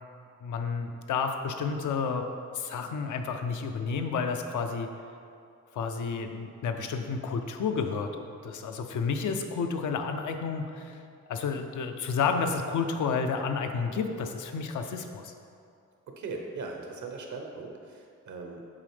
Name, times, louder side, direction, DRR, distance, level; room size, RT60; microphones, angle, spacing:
voice 1, 0.4-2.2 2.5-4.9 5.7-11.0 11.3-15.3, left 5 dB, 85° left, 6 dB, 0.5 m, -31 dB
voice 2, 16.1-18.7, right 3 dB, 75° right, 2 dB, 0.9 m, -39 dB
7.4 x 4.2 x 3.3 m, 2.4 s
cardioid pair, 105°, 30 cm